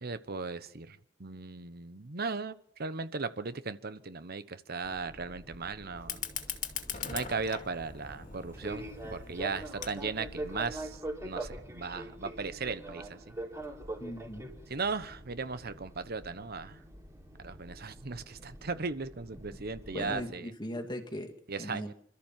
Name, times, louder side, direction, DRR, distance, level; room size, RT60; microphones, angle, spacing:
voice 1, 0.0-6.2 7.1-13.2 14.7-16.8 17.4-20.5 21.5-21.9, right 4 dB, 55° right, 1.0 m, -37 dB
Fixed-wing aircraft airplane, 4.8-20.2, right 1 dB, 15° right, 4.3 m, -44 dB
Fire, 6.0-11.0, left 7 dB, 45° left, 2.4 m, -41 dB
voice 2, 14.0-14.5 19.5-19.6 19.9-21.3 21.6-21.9, left 1 dB, 25° left, 2.3 m, -39 dB
27.0 x 13.5 x 7.5 m
head